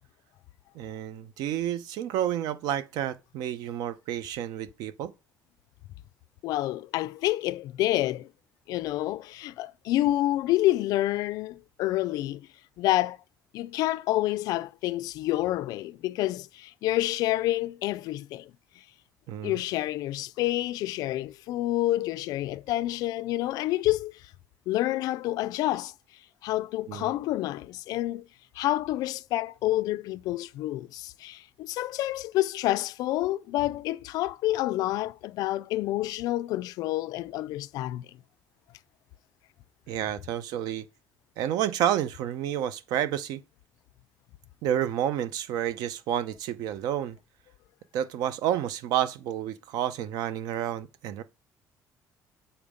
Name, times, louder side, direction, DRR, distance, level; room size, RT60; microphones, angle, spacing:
voice 1, 0.7-5.1 19.3-19.6 26.9-27.1 39.9-40.8 41.4-43.4 44.6-47.2 47.9-51.2, right 11 dB, 85° right, 0.7 m, -30 dB
voice 2, 6.4-8.3 8.7-12.5 12.8-13.2 13.5-18.5 19.4-24.3 24.7-25.9 26.4-28.3 28.5-38.1, left 15 dB, 75° left, 0.4 m, -28 dB
7.2 x 4.3 x 5.0 m
cardioid pair, 170°, 7 cm